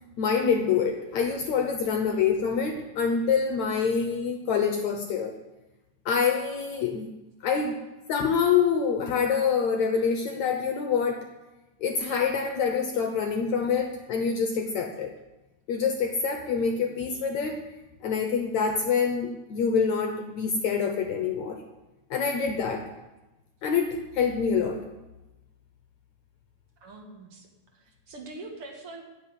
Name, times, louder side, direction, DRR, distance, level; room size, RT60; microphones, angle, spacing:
voice 1, 0.2-5.3 6.1-7.1 7.4-7.8 8.1-11.2 11.8-15.1 15.7-17.6 18.0-21.6 22.1-22.9 23.6-24.8, left 6 dB, 70° left, 5 dB, 1.8 m, -26 dB
voice 2, 26.8-29.0, right 2 dB, 45° right, 2 dB, 2.1 m, -44 dB
15.5 x 6.0 x 9.8 m, 1.1 s
omnidirectional pair, 4.4 m